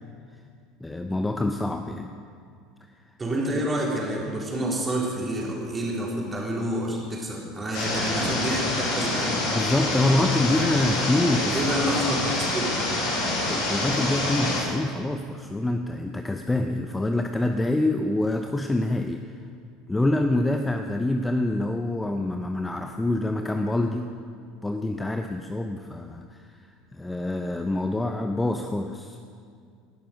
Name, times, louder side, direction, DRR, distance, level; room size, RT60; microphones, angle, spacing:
voice 1, 0.8-2.1 9.5-11.7 13.4-19.2 19.9-24.2 24.6-26.4 26.9-29.3, left 2 dB, 10° left, 6 dB, 0.7 m, -26 dB
voice 2, 3.2-9.4 11.5-12.7, right 1 dB, 20° right, -3 dB, 3.9 m, -28 dB
sound 1, 7.7-14.6, left 2 dB, 60° left, 4.1 m, -26 dB
18.5 x 11.5 x 5.3 m, 2.2 s
figure-of-eight pair, 70°, 0 cm